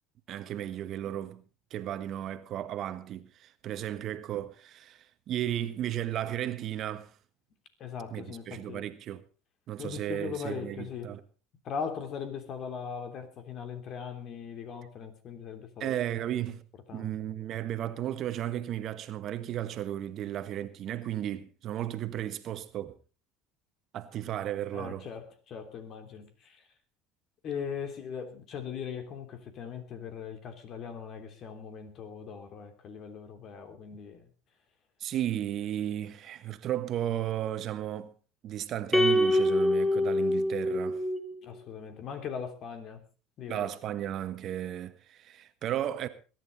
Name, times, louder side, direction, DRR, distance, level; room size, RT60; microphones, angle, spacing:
voice 1, 0.3-1.4 1.7-7.1 8.1-9.2 9.7-11.2 15.8-16.6 16.9-22.9 23.9-25.1 35.0-38.1 38.4-41.0 43.5-46.1, right 11 dB, 50° right, 1.4 m, -34 dB
voice 2, 7.8-8.8 9.8-11.1 11.6-16.0 16.9-17.2 24.7-26.6 27.4-34.3 41.4-43.0 43.4-43.7, left 7 dB, 50° left, 3.3 m, -40 dB
sound 1, 38.9-41.4, left 1 dB, ahead, 2.5 m, -25 dB
21.5 x 11.0 x 4.0 m
hypercardioid pair, 80°, 0 cm